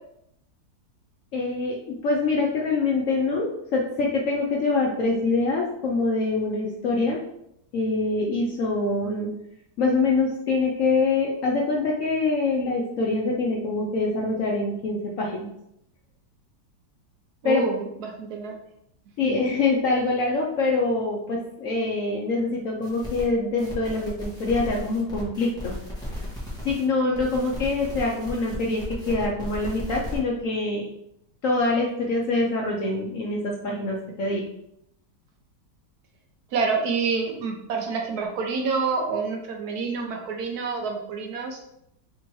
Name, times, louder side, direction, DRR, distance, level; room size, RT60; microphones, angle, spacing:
voice 1, 1.3-7.2 7.7-9.3 9.8-15.5 17.4-17.6 19.2-25.7 26.6-30.9 31.4-34.4, left 3 dB, 65° left, -1 dB, 0.8 m, -25 dB
voice 2, 17.4-18.5 19.2-19.4 36.5-41.6, right 4 dB, 70° right, 1 dB, 1.1 m, -28 dB
sound 1, 22.8-23.2 23.6-26.8 27.1-30.2, left 1 dB, 5° left, 0.9 m, -35 dB
3.5 x 2.9 x 4.5 m, 0.77 s
omnidirectional pair, 1.9 m